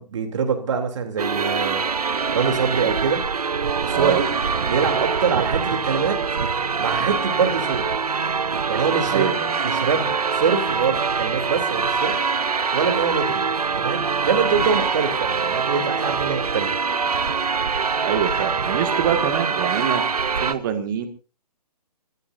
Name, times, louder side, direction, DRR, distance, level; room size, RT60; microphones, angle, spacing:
voice 1, 0.0-1.8 2.3-3.2 3.8-4.3 4.7-6.2 6.8-7.8 8.7-9.4 9.6-12.1 12.7-13.5 13.8-16.7, right 6 dB, 50° right, 5 dB, 3.3 m, -24 dB
sound 1, 1.2-20.5, right 5 dB, 70° right, 1.1 m, -24 dB
voice 2, 3.9-4.2 9.1-9.6 18.0-20.0 20.4-21.1, right 9 dB, 30° right, 8 dB, 2.0 m, -25 dB
28.5 x 14.5 x 2.7 m, 0.34 s
figure-of-eight pair, 140°, 20 cm